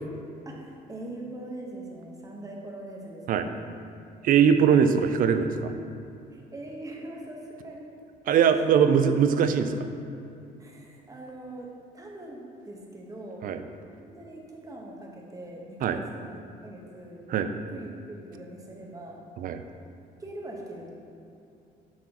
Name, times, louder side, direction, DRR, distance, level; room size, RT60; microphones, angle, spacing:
voice 1, 0.4-3.7 6.3-7.9 8.2-8.4 8.7-9.5 10.6-13.5 14.0-16.4 16.6-17.2 17.5-19.3 20.2-20.9, right 1 dB, 20° right, -1 dB, 1.2 m, -42 dB
voice 2, 4.2-5.7 8.3-9.7 13.4-13.6 15.8-16.0 17.3-17.5 19.4-19.6, right 7 dB, 55° right, 9 dB, 0.5 m, -21 dB
8.1 x 6.0 x 3.0 m, 2.7 s
cardioid pair, 110°, 17 cm